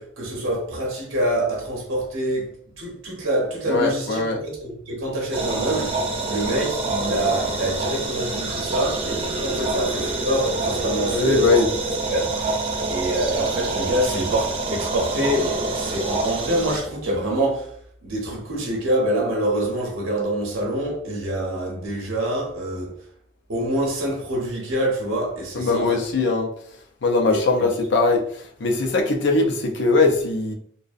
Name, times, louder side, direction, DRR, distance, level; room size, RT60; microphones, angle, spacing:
voice 1, 0.0-2.5 2.8-11.5 12.1-12.6 12.9-17.7 18.0-22.9 23.5-26.1 27.3-27.7, right 1 dB, 80° right, 0.7 m, -26 dB
voice 2, 3.7-4.4 11.1-11.7 25.5-26.5 27.0-30.5, left 3 dB, 60° left, 0.5 m, -20 dB
sound 1, 5.3-16.8, right 2 dB, 30° right, 0.4 m, -26 dB
2.5 x 2.0 x 2.4 m
head